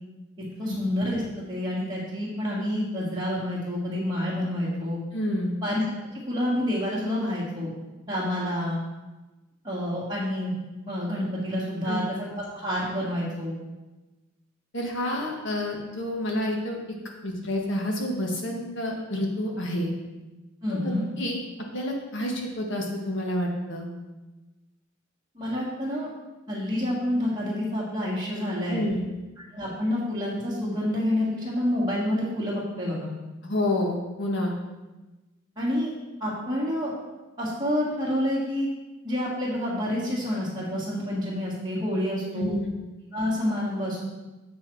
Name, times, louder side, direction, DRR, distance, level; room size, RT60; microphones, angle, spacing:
voice 1, 0.6-5.0 5.6-5.8 6.1-7.7 8.1-8.8 9.6-10.5 10.9-13.5 20.6-21.0 25.4-26.1 26.5-28.8 29.4-33.1 35.6-35.9 36.2-36.9 37.4-38.7 39.0-42.5 43.1-44.0, left 1 dB, 20° right, -10 dB, 1.8 m, -28 dB
voice 2, 5.1-5.5 11.8-12.0 14.7-16.8 17.2-19.9 20.7-20.9 21.2-21.4 21.7-23.9 28.7-29.1 33.4-34.5 42.3-42.7, left 1 dB, 60° left, 0 dB, 1.5 m, -28 dB
7.5 x 6.2 x 4.6 m, 1.1 s
head